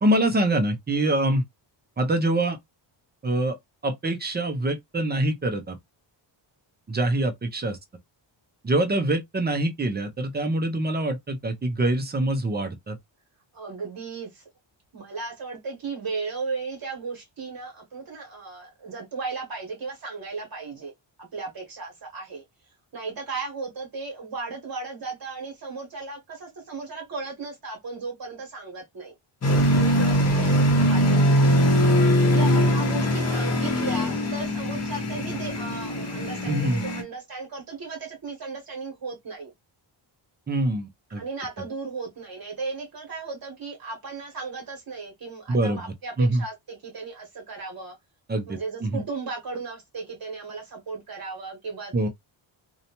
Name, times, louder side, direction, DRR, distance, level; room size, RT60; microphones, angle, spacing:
voice 1, 0.0-1.4 2.0-2.6 3.2-3.6 3.8-5.8 6.9-7.8 8.6-13.0 36.5-36.8 40.5-41.2 45.5-45.8 46.2-46.4 48.3-49.0 51.9-52.1, right 1 dB, 25° right, 0.4 m, -24 dB
voice 2, 13.5-14.4 14.9-20.9 21.2-22.4 22.9-29.1 29.5-31.5 32.2-39.5 41.1-48.0 48.5-52.1, right 4 dB, 45° right, 1.0 m, -36 dB
sound 1, 29.4-37.0, equal, 35° left, 0.7 m, -21 dB
2.7 x 2.2 x 2.8 m
wide cardioid pair, 180°, 48 cm